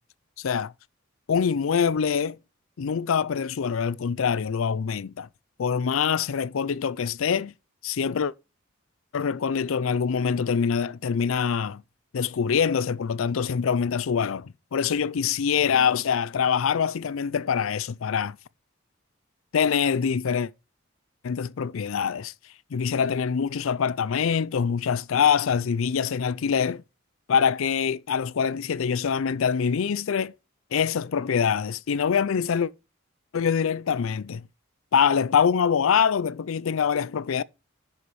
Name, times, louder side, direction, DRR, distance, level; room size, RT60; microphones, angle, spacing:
voice 1, 0.4-0.7 1.3-2.4 2.8-5.3 5.6-7.5 7.8-8.3 9.1-11.8 12.1-18.4 19.5-20.5 21.2-22.3 22.7-26.8 27.3-30.3 30.7-32.7 33.3-34.5 34.9-37.4, left 7 dB, 75° left, 0.4 m, -24 dB
11.0 x 6.9 x 3.1 m
head